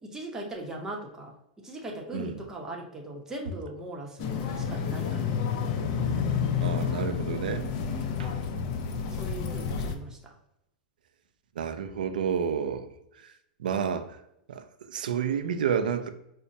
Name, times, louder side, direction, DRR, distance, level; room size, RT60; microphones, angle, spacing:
voice 1, 0.0-1.3 1.6-5.8 9.1-10.3, right 1 dB, 10° right, 0.8 m, -39 dB
sound 1, 4.2-10.0, left 6 dB, 50° left, 0.4 m, -30 dB
voice 2, 6.6-7.7 8.2-8.4 11.6-12.9 13.2-13.3 13.6-14.2 14.5-16.1, right 7 dB, 85° right, 0.3 m, -30 dB
5.0 x 2.1 x 2.6 m
hypercardioid pair, 130°, 5 cm